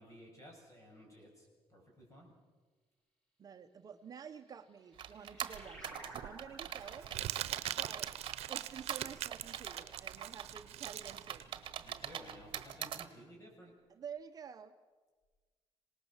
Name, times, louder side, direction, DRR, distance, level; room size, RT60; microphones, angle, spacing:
voice 1, 0.0-2.3 11.8-13.7, equal, 30° left, 1 dB, 7.2 m, -55 dB
voice 2, 3.4-7.1 7.8-8.1 8.5-11.5 13.9-14.7, right 7 dB, 35° right, 6 dB, 0.9 m, -50 dB
sound 1, 4.4-9.5, right 2 dB, 15° left, 7.7 m, -56 dB
sound 2, 5.0-13.1, right 9 dB, 55° right, 1.4 m, -43 dB
Crumpling crinkling, 5.5-12.6, right 13 dB, 90° right, 0.8 m, -42 dB
26.5 x 19.0 x 7.3 m, 1.3 s
cardioid pair, 165°, 10 cm